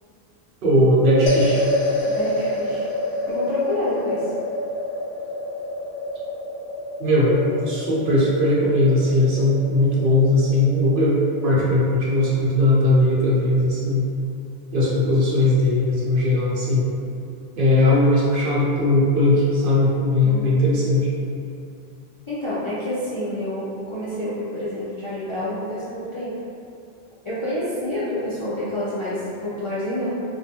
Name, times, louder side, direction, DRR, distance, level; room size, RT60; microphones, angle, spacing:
voice 1, 0.6-1.6 7.0-14.1 14.7-16.8 17.6-21.1, left 1 dB, 60° right, -7 dB, 0.7 m, -19 dB
sound 1, 1.3-11.7, left 1 dB, 85° left, 0.9 m, -28 dB
voice 2, 2.0-2.9 3.3-4.3 20.2-20.6 22.3-26.3 27.2-30.1, left 1 dB, 50° left, -11 dB, 0.3 m, -28 dB
2.3 x 2.2 x 2.7 m, 2.5 s
omnidirectional pair, 1.1 m